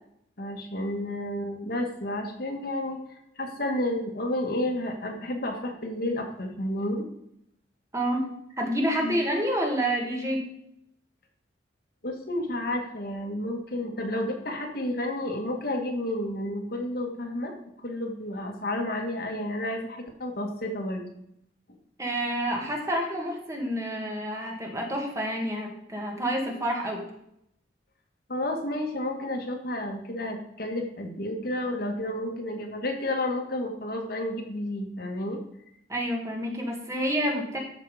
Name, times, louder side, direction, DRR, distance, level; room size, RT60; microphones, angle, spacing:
voice 1, 0.4-3.0 3.4-7.0 9.0-9.2 12.0-17.5 17.8-21.0 28.3-35.4, left 1 dB, 55° left, 2 dB, 2.0 m, -31 dB
voice 2, 8.6-10.4 22.0-27.0 35.9-37.6, equal, 15° right, 0 dB, 2.0 m, -28 dB
13.5 x 6.1 x 5.0 m, 0.77 s
head